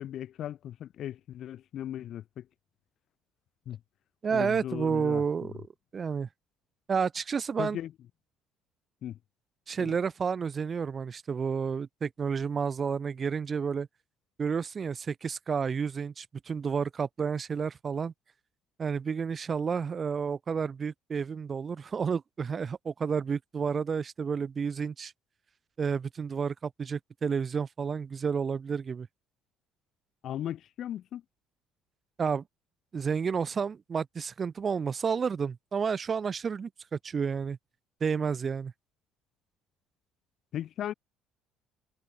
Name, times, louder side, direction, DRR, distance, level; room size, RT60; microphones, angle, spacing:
voice 1, 0.0-2.5 3.7-3.8 4.3-5.2 5.5-5.6 7.6-7.9 9.0-9.2 9.8-10.0 30.2-31.2 40.5-40.9, left 11 dB, 60° left, 1.1 m, -37 dB
voice 2, 4.2-5.7 5.9-6.3 6.9-7.8 9.7-13.9 14.4-18.1 18.8-25.1 25.8-29.1 32.2-32.4 32.9-37.6 38.0-38.7, right 6 dB, 35° right, 0.8 m, -30 dB
cardioid pair, 105°, 0 cm